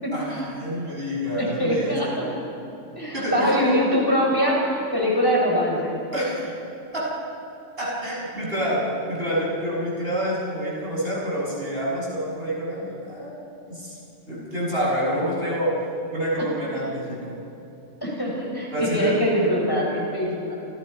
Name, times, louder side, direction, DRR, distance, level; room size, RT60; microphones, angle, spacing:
voice 1, 0.1-2.2 3.1-3.8 6.1-6.5 6.9-7.1 7.8-8.8 9.1-14.0 14.3-15.7 16.1-17.4 18.7-19.1, equal, 50° right, -4 dB, 7.2 m, -27 dB
voice 2, 1.4-2.3 3.0-6.0 18.0-20.5, equal, 15° left, -3 dB, 6.3 m, -23 dB
29.5 x 27.5 x 5.6 m, 2.8 s
omnidirectional pair, 1.3 m